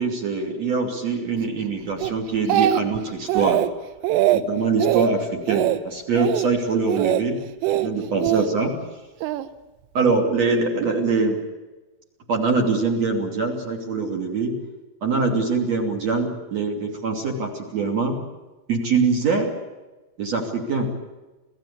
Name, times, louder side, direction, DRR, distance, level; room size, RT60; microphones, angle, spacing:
voice 1, 0.0-3.6 4.3-7.4 7.7-8.7 9.9-11.4 12.3-14.6 15.0-18.2 18.7-19.5 20.2-20.9, right 4 dB, 40° right, 2 dB, 3.4 m, -23 dB
Speech, 2.0-3.0 3.3-3.7 4.0-4.4 4.8-5.1 5.5-5.8 6.1-6.5 6.9-7.2 7.6-8.5 9.2-9.5, right 13 dB, 85° right, 3.5 m, -21 dB
27.0 x 17.0 x 8.4 m, 1.2 s
omnidirectional pair, 5.7 m